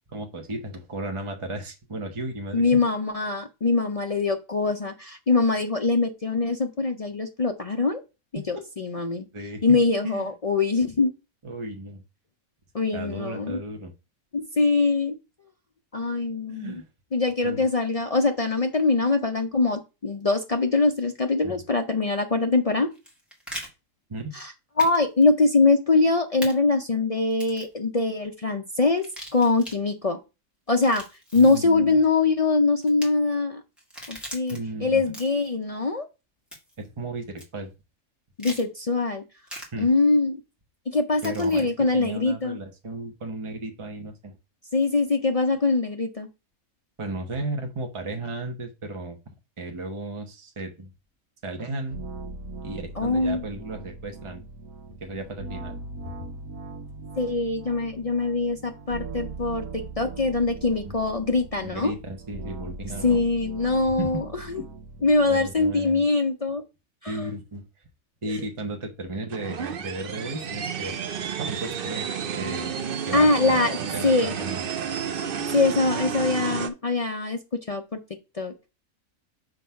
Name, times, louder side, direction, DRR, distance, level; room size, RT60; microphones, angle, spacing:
voice 1, 0.1-2.8 8.4-8.5 9.3-10.3 11.4-12.0 12.9-13.9 16.5-16.9 17.4-17.6 21.4-21.5 24.1-24.3 31.3-32.0 34.5-35.0 36.8-37.7 39.7-39.9 41.2-44.4 47.0-49.2 49.6-50.9 51.4-52.0 52.6-54.4 55.0-55.8 60.8-60.9 61.6-63.2 64.0-64.2 64.6-64.7 65.3-66.1 67.1-67.6 68.2-71.0 71.5-72.8 73.1-74.7, right 2 dB, 25° right, 4 dB, 1.0 m, -35 dB
voice 2, 2.5-8.0 8.3-9.3 9.6-11.1 12.7-13.6 14.3-15.1 15.9-16.8 17.1-22.9 24.3-24.5 24.8-29.0 29.3-30.2 30.7-31.0 31.3-33.6 34.1-36.1 38.4-39.2 39.8-40.4 40.9-42.6 44.7-46.3 53.0-53.4 57.2-61.9 63.0-64.2 64.5-64.6 65.0-66.6 67.0-67.3 73.1-74.3 75.5-77.4 77.7-78.0 78.4-78.5, left 3 dB, 60° left, 4 dB, 0.3 m, -23 dB
sound 1, 22.9-23.7 24.8-25.0 25.2-25.3 26.4-26.5 27.3-27.7 28.9-29.8 30.7-31.6 32.8-33.1 33.8-34.6 35.0-35.5 36.5-36.8 37.4-37.5 38.4-38.6 39.5-39.7 41.2-41.6, equal, ahead, 2.0 m, -40 dB
sound 2, 51.9-65.7, right 3 dB, 85° right, 1.4 m, -40 dB
sound 3, 69.3-76.7, right 7 dB, 55° right, 0.6 m, -31 dB
6.2 x 4.0 x 5.7 m, 0.28 s
omnidirectional pair, 1.5 m